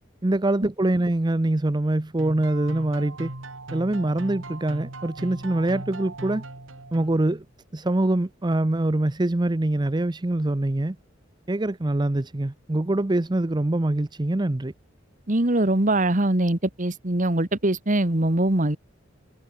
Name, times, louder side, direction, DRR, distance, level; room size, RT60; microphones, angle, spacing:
voice 1, 0.2-3.3 3.7-6.4 6.9-7.4 7.7-11.0 11.5-14.7, right 1 dB, 20° right, 0.6 m, -24 dB
sound 1, 2.2-7.4, right 2 dB, 85° right, 2.5 m, -38 dB
voice 2, 15.3-18.8, right 1 dB, 40° right, 1.9 m, -22 dB
head